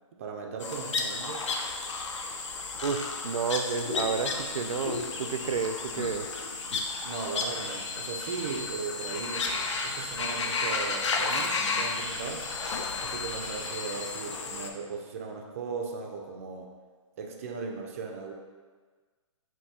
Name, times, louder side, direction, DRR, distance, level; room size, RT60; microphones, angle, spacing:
voice 1, 0.2-1.5 7.0-9.6 9.8-12.5 13.0-16.7 17.2-18.3, right 5 dB, 25° right, 2 dB, 0.4 m, -37 dB
sound 1, 0.6-14.7, left 4 dB, 65° left, 0.5 m, -33 dB
voice 2, 2.8-6.3, right 6 dB, 90° right, 7 dB, 0.4 m, -31 dB
sound 2, 7.6-14.0, left 5 dB, 80° left, 1.2 m, -40 dB
5.3 x 2.6 x 2.8 m, 1.4 s
hypercardioid pair, 160°, 17 cm